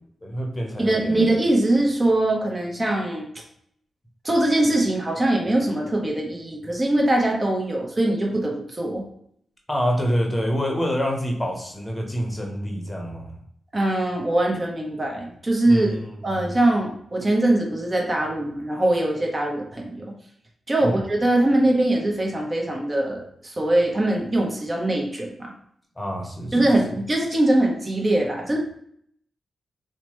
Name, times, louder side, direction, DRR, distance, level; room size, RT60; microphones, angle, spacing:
voice 1, 0.2-1.3 9.7-13.4 15.7-16.5 20.8-21.0 26.0-26.6, equal, 20° left, 1 dB, 0.8 m, -27 dB
voice 2, 0.8-3.3 4.2-9.0 13.7-16.0 16.2-20.1 20.7-25.5 26.5-28.6, right 1 dB, 35° right, 0 dB, 0.8 m, -22 dB
2.9 x 2.2 x 2.9 m, 0.67 s
cardioid pair, 50°, 0 cm